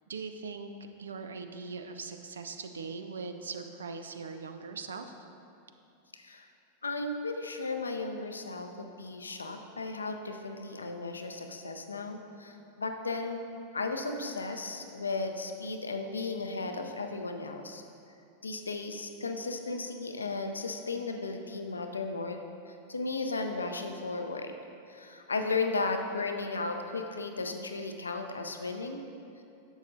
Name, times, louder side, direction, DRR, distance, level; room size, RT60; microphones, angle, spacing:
voice 1, 0.1-0.7 1.0-5.1, right 4 dB, 70° right, 7 dB, 0.5 m, -40 dB
voice 2, 6.1-6.5 6.8-13.4 13.7-17.8 18.4-22.4 22.7-24.6 24.9-29.0, left 3 dB, 75° left, 5 dB, 0.6 m, -35 dB
11.0 x 7.3 x 2.6 m, 2.6 s
figure-of-eight pair, 90°, 0 cm